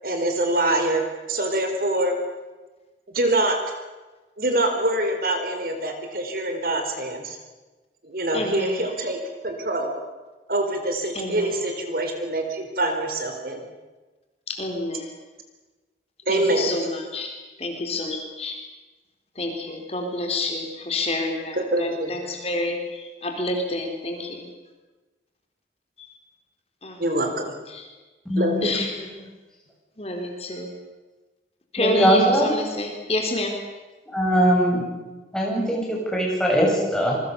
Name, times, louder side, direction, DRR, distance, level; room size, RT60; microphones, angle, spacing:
voice 1, 0.0-2.2 3.1-3.6 4.4-7.4 8.0-9.9 10.5-13.6 16.3-16.8 21.5-22.1 27.0-27.5 28.4-28.8, right 1 dB, 55° right, 5 dB, 4.2 m, -25 dB
voice 2, 8.3-8.8 11.1-11.6 14.5-15.1 16.3-17.3 17.6-18.6 19.4-24.5 26.0-26.1 26.8-27.0 27.7-27.8 28.6-29.2 30.0-30.7 31.7-33.6, left 2 dB, 35° left, 3 dB, 3.8 m, -28 dB
voice 3, 28.3-28.7 31.8-32.5 34.1-34.9 35.3-37.2, right 1 dB, 5° left, -3 dB, 7.8 m, -21 dB
27.0 x 23.0 x 7.0 m, 1.2 s
head